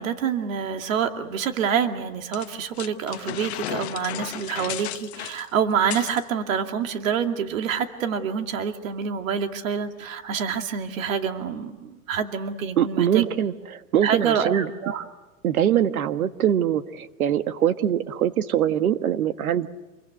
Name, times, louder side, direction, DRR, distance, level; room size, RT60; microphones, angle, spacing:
voice 1, 0.0-13.2 14.0-15.0, right 7 dB, 65° right, 6 dB, 2.5 m, -27 dB
sound 1, 2.3-6.2, left 15 dB, 50° left, 1.0 m, -34 dB
voice 2, 12.8-14.7 15.4-19.7, right 10 dB, 85° right, 11 dB, 1.6 m, -23 dB
28.0 x 22.5 x 7.9 m, 1.2 s
supercardioid pair, 165°, 42 cm